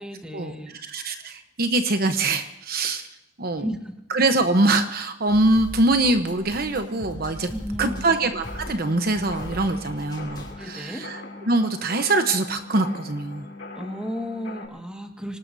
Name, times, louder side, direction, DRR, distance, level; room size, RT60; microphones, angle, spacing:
voice 1, 0.0-0.8 3.6-3.9 7.5-8.1 10.5-11.1 13.7-15.4, equal, 5° right, 2 dB, 1.8 m, -34 dB
voice 2, 0.8-3.1 3.4-3.7 4.1-7.5 7.8-11.2 11.5-13.5, right 2 dB, 55° right, 7 dB, 1.0 m, -23 dB
sound 1, 5.3-10.5, equal, 25° left, 3.1 m, -40 dB
sound 2, 6.1-14.6, left 3 dB, 50° left, 4.9 m, -44 dB
sound 3, 7.8-14.7, left 2 dB, 75° left, 3.2 m, -43 dB
26.5 x 18.5 x 2.7 m, 0.87 s
head